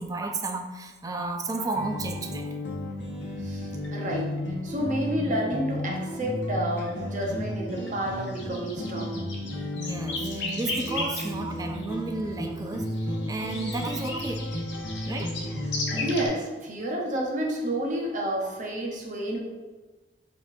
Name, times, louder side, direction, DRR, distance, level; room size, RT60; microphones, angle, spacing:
voice 1, 0.0-2.6 9.7-14.5 15.1-15.4, right 2 dB, 20° right, 5 dB, 0.3 m, -33 dB
sound 1, 1.7-16.3, left 1 dB, 70° left, 0.8 m, -32 dB
voice 2, 3.4-4.3 4.6-9.2 15.7-19.4, equal, 45° right, -1 dB, 0.8 m, -30 dB
4.9 x 3.6 x 2.6 m, 1.3 s
head